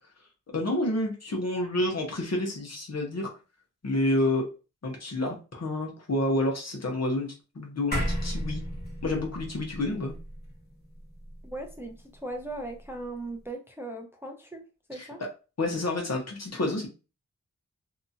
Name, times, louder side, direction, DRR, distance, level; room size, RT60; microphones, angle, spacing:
voice 1, 0.5-3.3 3.8-4.4 4.8-8.6 9.0-10.2 14.9-15.3 15.6-16.9, left 1 dB, 50° left, 1 dB, 0.9 m, -29 dB
sound 1, 7.9-12.5, equal, 30° left, 1.2 m, -34 dB
voice 2, 11.4-14.6 14.9-15.2, right 2 dB, 5° right, 2 dB, 0.5 m, -38 dB
2.8 x 2.3 x 2.7 m, 0.32 s
wide cardioid pair, 80°, 33 cm